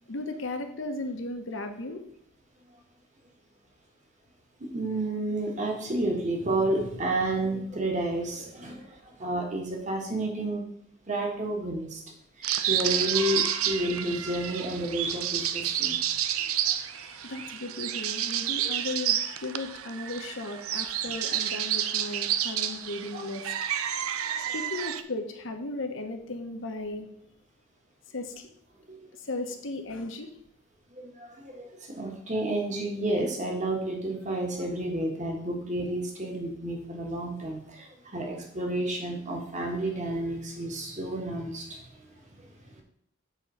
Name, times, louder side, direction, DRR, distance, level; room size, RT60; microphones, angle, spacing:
voice 1, 0.1-2.0 17.0-23.4 24.5-27.1 28.1-28.5 29.3-30.3, left 2 dB, 65° left, 6 dB, 1.0 m, -36 dB
voice 2, 4.6-8.8 9.2-10.6 11.1-12.0 12.7-16.0 23.1-23.2 24.3-24.5 28.9-29.0 31.4-31.6 32.0-37.9 38.1-41.8, right 1 dB, 35° right, 1 dB, 1.5 m, -30 dB
sound 1, 12.4-25.0, right 10 dB, 90° right, 0.5 m, -30 dB
8.3 x 3.8 x 5.5 m, 0.68 s
head